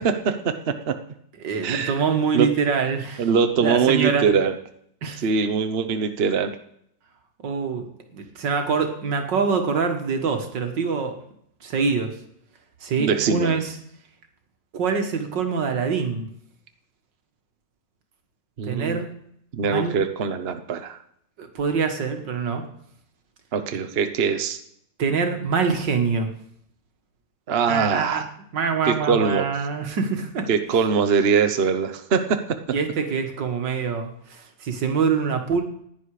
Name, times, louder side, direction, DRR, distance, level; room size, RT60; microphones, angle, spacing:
voice 1, 0.0-0.9 1.6-1.9 2.3-2.5 3.2-4.5 5.2-6.5 13.0-13.6 18.6-19.0 19.5-21.0 23.5-24.6 27.5-28.2 28.9-29.5 30.5-32.4, right 6 dB, 40° right, 8 dB, 1.0 m, -22 dB
voice 2, 1.4-3.3 3.6-4.3 5.0-5.2 7.4-7.9 8.1-11.2 11.6-12.1 12.8-13.8 14.7-16.3 18.6-19.1 19.6-20.0 21.4-22.6 25.0-26.3 27.7-28.2 28.5-30.5 32.7-35.6, right 5 dB, 75° right, 5 dB, 2.3 m, -24 dB
16.0 x 10.5 x 4.9 m, 0.70 s
omnidirectional pair, 1.9 m